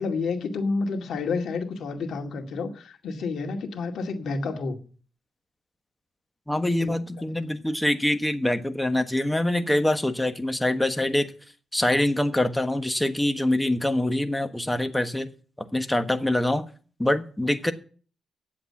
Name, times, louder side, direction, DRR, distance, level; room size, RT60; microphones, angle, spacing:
voice 1, 0.0-4.8 6.8-6.9, left 4 dB, 75° left, 5 dB, 2.1 m, -29 dB
voice 2, 6.5-11.3 11.7-15.3 15.7-16.6 17.0-17.7, left 1 dB, 10° left, 9 dB, 1.3 m, -24 dB
10.0 x 7.8 x 8.7 m, 0.42 s
cardioid pair, 100°, 0 cm